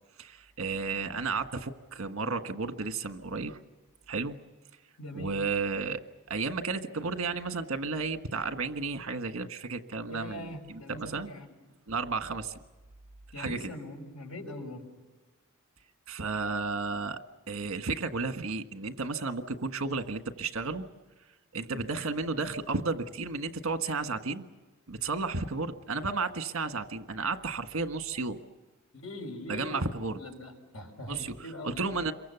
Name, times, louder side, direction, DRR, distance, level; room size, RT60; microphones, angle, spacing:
voice 1, 0.2-3.6 4.1-4.4 5.1-6.0 6.3-10.5 10.9-11.3 11.9-12.5 13.4-13.7 16.1-17.2 17.5-20.9 21.5-24.4 24.9-28.4 29.5-30.2 31.1-31.3 31.6-32.1, right 4 dB, 65° right, 7 dB, 1.5 m, -33 dB
voice 2, 5.0-5.4 10.1-11.5 13.3-14.9 28.9-31.8, left 1 dB, 80° left, 4 dB, 5.7 m, -42 dB
28.0 x 23.5 x 7.0 m, 1.2 s
head